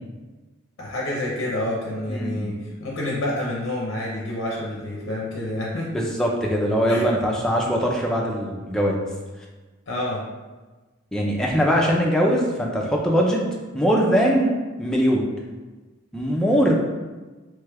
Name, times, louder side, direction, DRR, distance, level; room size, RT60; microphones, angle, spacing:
voice 1, 0.8-6.0 6.9-7.1 9.9-10.2, left 1 dB, 60° left, -3 dB, 0.5 m, -28 dB
voice 2, 2.1-2.5 5.9-9.0 11.1-13.4 13.7-14.5 14.8-15.3 16.1-16.7, equal, 5° left, -2 dB, 0.4 m, -21 dB
3.0 x 2.3 x 3.3 m, 1.2 s
head